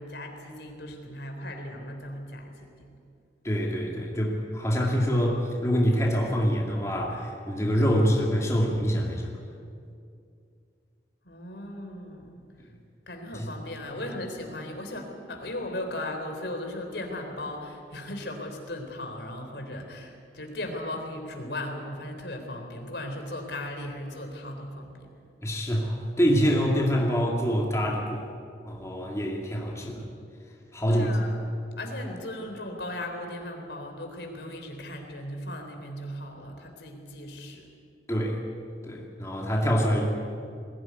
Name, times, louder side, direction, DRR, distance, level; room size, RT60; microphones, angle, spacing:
voice 1, 0.0-2.7 11.2-12.4 13.1-25.1 30.9-31.4 31.8-37.6, left 1 dB, 75° left, 3 dB, 3.7 m, -37 dB
voice 2, 3.4-9.4 13.3-13.5 25.4-28.3 28.7-30.1 30.7-31.1 38.1-38.4 38.8-40.1, equal, 15° left, -1 dB, 2.4 m, -25 dB
21.5 x 17.0 x 9.6 m, 2.4 s
head